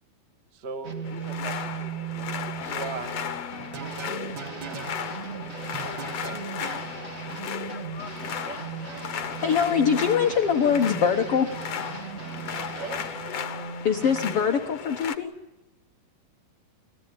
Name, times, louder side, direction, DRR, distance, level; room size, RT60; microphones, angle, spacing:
voice 1, 0.5-3.1 3.8-6.9, right 3 dB, 25° right, 6 dB, 1.3 m, -42 dB
sound 1, 0.8-14.6, right 6 dB, 90° right, 0.7 m, -38 dB
sound 2, 1.0-15.2, left 8 dB, 60° left, 1.7 m, -36 dB
sound 3, 3.6-4.9 5.7-6.8, right 6 dB, 45° right, 1.5 m, -39 dB
voice 2, 8.5-9.1 12.6-13.2, right 6 dB, 75° right, 3 dB, 4.5 m, -41 dB
voice 3, 9.1-11.5 13.8-15.3, left 7 dB, 75° left, 5 dB, 1.3 m, -23 dB
29.5 x 16.0 x 10.0 m, 1.1 s
omnidirectional pair, 4.5 m